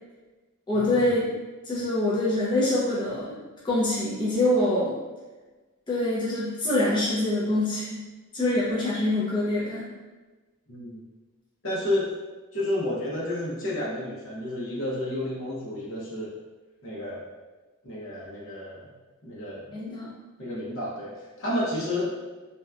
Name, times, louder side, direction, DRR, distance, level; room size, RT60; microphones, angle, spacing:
voice 1, 0.7-1.2 1.6-3.4 3.6-5.0 5.9-8.1 8.3-9.9 19.7-20.2, left 1 dB, 20° left, -8 dB, 0.5 m, -25 dB
voice 2, 10.7-11.0 11.6-12.1 12.5-16.3 16.8-17.2 17.8-18.9 19.2-19.8 20.4-22.1, left 1 dB, 60° left, -5 dB, 0.7 m, -31 dB
2.7 x 2.2 x 2.3 m, 1.2 s
head